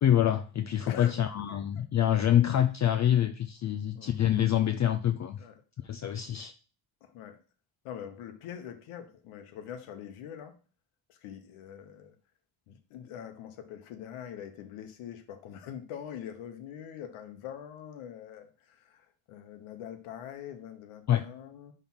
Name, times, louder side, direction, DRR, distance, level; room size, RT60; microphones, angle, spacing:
voice 1, 0.0-5.4 5.8-6.5 21.1-21.2, left 11 dB, 35° left, 0.4 m, -26 dB
voice 2, 0.9-1.2 1.5-1.6 3.9-4.1 5.4-5.5 7.0-7.4 7.8-10.5 11.1-12.1 12.7-21.7, left 9 dB, 85° left, 1.2 m, -43 dB
5.9 x 3.6 x 5.5 m
cardioid pair, 110°, 49 cm